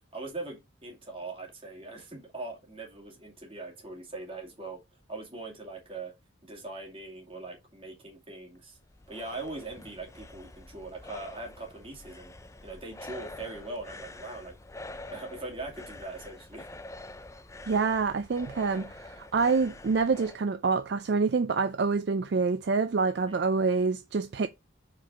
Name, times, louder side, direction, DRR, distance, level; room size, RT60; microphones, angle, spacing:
voice 1, 0.1-4.8 5.1-6.1 6.4-8.8 9.1-12.3 12.6-14.5 15.1-16.7 23.3-23.4, right 2 dB, 25° right, 2.4 m, -41 dB
sound 1, 8.5-20.4, left 2 dB, 15° left, 0.4 m, -46 dB
voice 2, 17.7-24.5, right 4 dB, 55° right, 0.4 m, -27 dB
5.0 x 4.6 x 5.4 m
head